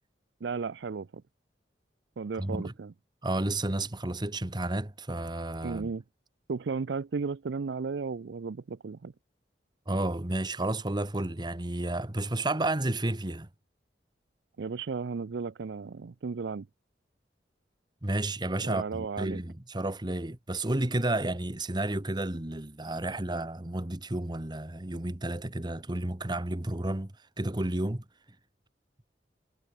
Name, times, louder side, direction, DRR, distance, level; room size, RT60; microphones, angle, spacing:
voice 1, 0.4-1.2 2.2-2.9 5.6-6.0 6.5-9.1 14.6-16.7 18.6-19.4, right 5 dB, 70° right, 0.5 m, -34 dB
voice 2, 2.4-2.7 3.2-5.9 9.9-13.5 18.0-28.0, right 1 dB, 25° right, 1.3 m, -31 dB
head